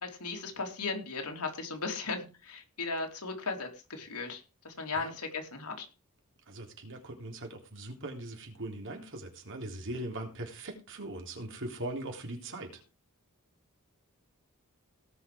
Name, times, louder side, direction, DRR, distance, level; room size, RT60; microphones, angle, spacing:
voice 1, 0.0-5.9, left 4 dB, 85° left, 3 dB, 3.3 m, -37 dB
voice 2, 6.5-12.8, right 1 dB, 60° right, 2 dB, 3.5 m, -40 dB
18.0 x 6.0 x 5.1 m, 0.31 s
head